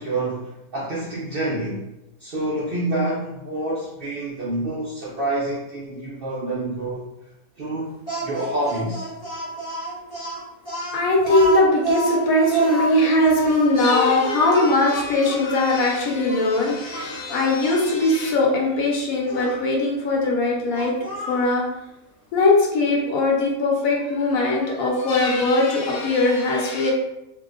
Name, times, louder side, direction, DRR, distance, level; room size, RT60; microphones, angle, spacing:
voice 1, 0.0-1.8 2.2-7.0 7.6-9.1, right 1 dB, 65° right, -6 dB, 0.5 m, -27 dB
Speech, 8.1-15.6 16.3-16.4 16.9-17.9 19.3-19.6 20.7-21.5, right 1 dB, 20° left, 0.8 m, -28 dB
voice 2, 10.9-20.9 21.3-21.6 22.3-26.9, left 2 dB, 75° left, -2 dB, 1.2 m, -20 dB
2.7 x 2.0 x 3.6 m, 0.94 s
omnidirectional pair, 1.5 m